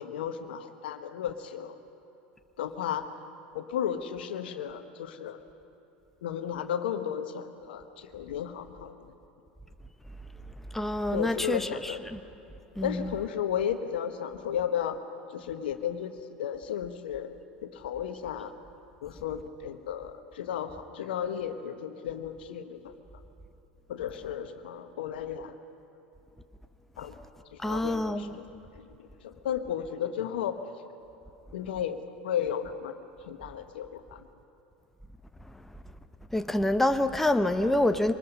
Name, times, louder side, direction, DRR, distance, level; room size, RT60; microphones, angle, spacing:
voice 1, 0.0-1.8 2.6-3.1 3.5-5.4 6.2-9.1 11.1-12.0 12.8-15.0 15.3-17.3 17.6-18.5 19.0-22.9 23.9-25.5 27.0-27.2 27.5-28.5 28.7-30.6 31.5-33.0 33.2-34.3, left 9 dB, 75° left, 8 dB, 1.2 m, -34 dB
voice 2, 10.7-11.9 12.8-13.1 27.6-28.3 36.3-38.1, left 1 dB, 5° left, 8 dB, 0.9 m, -26 dB
24.5 x 20.0 x 5.4 m, 3.0 s
hypercardioid pair, 80°, 5 cm